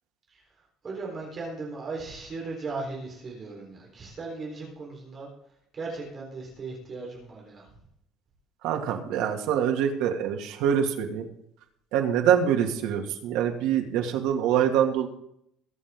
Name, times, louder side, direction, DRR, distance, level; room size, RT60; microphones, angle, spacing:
voice 1, 0.8-5.3 5.7-7.8, right 3 dB, 25° right, -2 dB, 4.1 m, -37 dB
voice 2, 8.6-11.2 11.9-15.1, right 9 dB, 75° right, 2 dB, 2.4 m, -25 dB
22.5 x 8.0 x 3.8 m, 0.73 s
cardioid pair, 180°, 0 cm